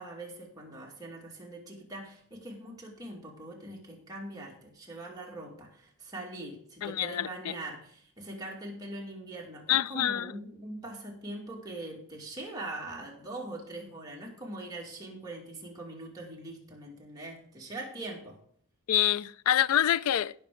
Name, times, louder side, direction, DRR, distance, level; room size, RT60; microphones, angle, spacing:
voice 1, 0.0-18.4, right 1 dB, 15° right, 2.2 m, -42 dB
voice 2, 6.8-7.6 9.7-10.3 18.9-20.3, left 11 dB, 80° left, 0.4 m, -26 dB
16.5 x 6.2 x 3.7 m
head